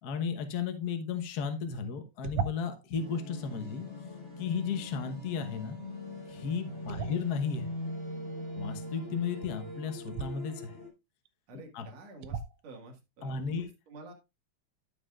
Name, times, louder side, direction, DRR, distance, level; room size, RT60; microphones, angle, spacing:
voice 1, 0.0-3.9 4.4-5.8 6.3-7.7 8.6-10.8 11.5-11.9 13.2-13.7, left 6 dB, 65° left, 6 dB, 0.9 m, -34 dB
sound 1, 2.2-2.9 6.9-7.6 10.1-10.3 11.3-11.4 12.2-12.7, right 6 dB, 85° right, 1.3 m, -36 dB
sound 2, 2.9-10.9, left 1 dB, 20° left, 2.8 m, -41 dB
voice 2, 6.8-7.2 11.5-14.1, right 2 dB, 60° right, 1 dB, 2.9 m, -49 dB
13.5 x 5.6 x 2.4 m, 0.25 s
omnidirectional pair, 3.4 m